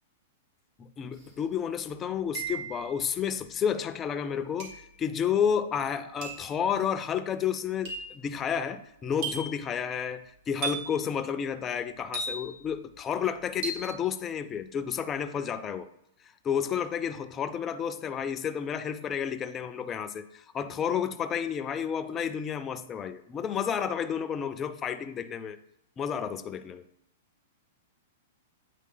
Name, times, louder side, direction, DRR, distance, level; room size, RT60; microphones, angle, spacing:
voice 1, 0.8-15.9 16.2-25.6 26.0-26.9, left 8 dB, 25° left, 0.4 m, -31 dB
sound 1, 1.2-1.3 2.3-2.9 4.6-4.9 6.2-6.5 7.8-8.2 9.2-9.6 10.6-11.0 12.1-12.7 13.6-14.0, right 4 dB, 60° right, 1.9 m, -35 dB
8.5 x 3.2 x 3.9 m
hypercardioid pair, 125°, 0 cm